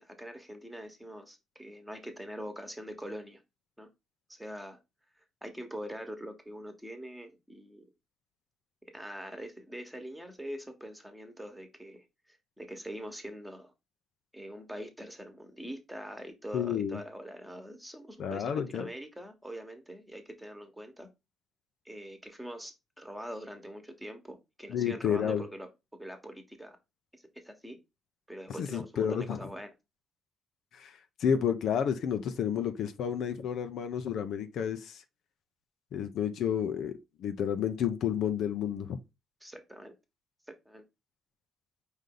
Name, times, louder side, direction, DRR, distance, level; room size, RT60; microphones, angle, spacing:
voice 1, 0.0-3.4 3.8-3.9 4.3-4.8 5.4-7.8 8.9-13.7 14.3-21.1 21.8-26.8 27.4-27.8 28.3-29.7 39.4-39.9 40.6-40.8, equal, 5° right, 1.2 m, -43 dB
voice 2, 16.5-17.0 18.2-18.9 24.7-25.4 28.6-29.4 30.7-30.9 31.2-35.0 35.9-36.9 37.2-39.0, left 8 dB, 75° left, 0.6 m, -30 dB
5.0 x 2.7 x 3.8 m
cardioid pair, 90°, 0 cm